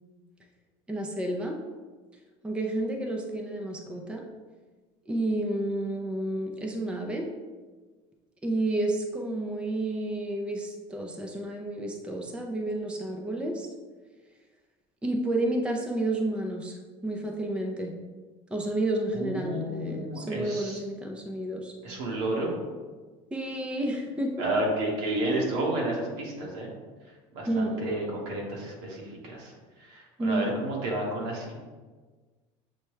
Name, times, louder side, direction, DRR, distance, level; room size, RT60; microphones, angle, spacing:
voice 1, 0.9-1.6 2.4-4.3 5.1-7.3 8.4-13.7 15.0-17.9 18.5-21.7 23.3-24.5 27.4-27.8 30.2-30.6, right 1 dB, 5° right, 1 dB, 0.5 m, -30 dB
voice 2, 19.1-20.8 21.8-22.5 24.4-26.7 27.3-29.5 29.8-31.5, right 1 dB, 80° right, -2 dB, 1.3 m, -31 dB
6.7 x 2.2 x 3.1 m, 1.4 s
supercardioid pair, 125°, 14 cm